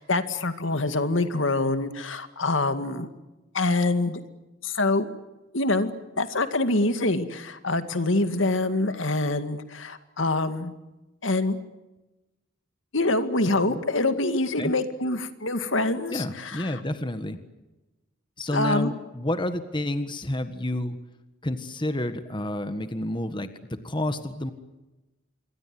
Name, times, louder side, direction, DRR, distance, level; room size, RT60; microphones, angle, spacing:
voice 1, 0.0-3.1 3.5-4.2 4.6-5.1 5.5-5.9 6.2-10.7 11.2-11.6 12.9-16.8 18.5-18.9, left 2 dB, 75° left, 9 dB, 2.1 m, -25 dB
voice 2, 16.1-17.4 18.4-21.0 21.4-23.5 23.8-24.5, left 1 dB, 25° left, 10 dB, 1.5 m, -29 dB
27.0 x 23.5 x 7.8 m, 1.1 s
head